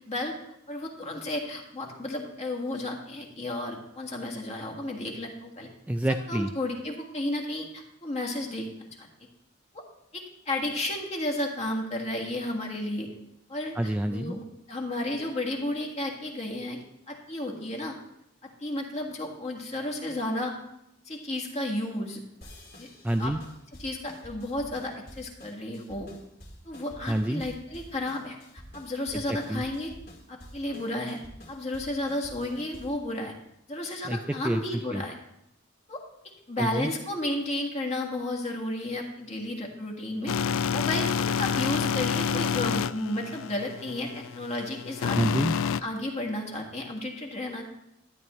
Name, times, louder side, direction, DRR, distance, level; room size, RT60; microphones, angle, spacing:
voice 1, 0.1-0.4 0.7-5.7 6.3-8.7 9.0-9.1 9.7-9.8 10.1-13.1 13.5-13.8 14.1-16.8 17.1-18.0 18.4-20.5 21.1-22.2 22.8-22.9 23.2-23.3 23.8-26.1 26.7-28.4 28.7-29.9 30.3-31.2 31.5-33.3 33.7-35.2 35.9-36.0 36.5-40.3 40.7-45.2 45.7-47.6, left 1 dB, 35° left, 1 dB, 1.7 m, -32 dB
voice 2, 5.9-6.5 13.8-14.4 23.0-23.4 27.1-27.4 29.1-29.6 34.0-34.2 34.4-34.6 34.9-35.0 36.6-36.9 45.1-45.5, right 1 dB, 5° right, 5 dB, 0.3 m, -27 dB
sound 1, 22.4-33.1, equal, 50° left, 2.4 m, -49 dB
sound 2, 40.3-45.8, left 7 dB, 75° left, 0.3 m, -28 dB
12.5 x 10.0 x 3.1 m, 0.80 s
head